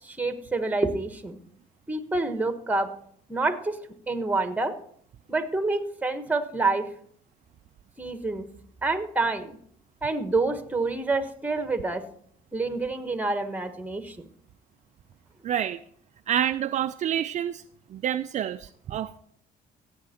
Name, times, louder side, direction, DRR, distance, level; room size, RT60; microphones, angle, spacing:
voice 1, 0.0-1.4 1.9-2.9 3.3-3.8 4.1-4.8 5.3-6.9 8.0-8.5 8.8-9.6 10.0-12.0 12.5-14.2, right 3 dB, 10° right, 10 dB, 1.2 m, -27 dB
voice 2, 15.4-15.8 16.3-17.6 17.9-19.2, right 10 dB, 45° right, 9 dB, 0.4 m, -28 dB
16.0 x 7.9 x 4.3 m, 0.65 s
cardioid pair, 110°, 17 cm